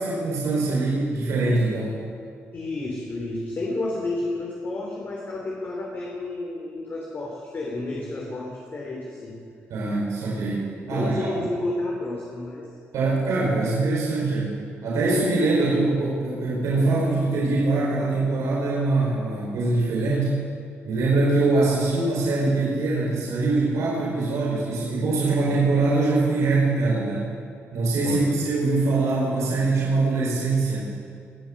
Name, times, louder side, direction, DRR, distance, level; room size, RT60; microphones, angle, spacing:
voice 1, 0.0-2.0 9.7-11.3 12.9-14.5 14.8-20.4 20.8-27.3 27.7-30.9, right 3 dB, 80° right, -5 dB, 4.8 m, -23 dB
voice 2, 2.5-9.3 9.8-9.9 10.9-12.7 28.0-28.3, left 2 dB, 40° left, -2 dB, 3.2 m, -31 dB
20.5 x 7.5 x 7.8 m, 2.2 s
cardioid pair, 80°, 5 cm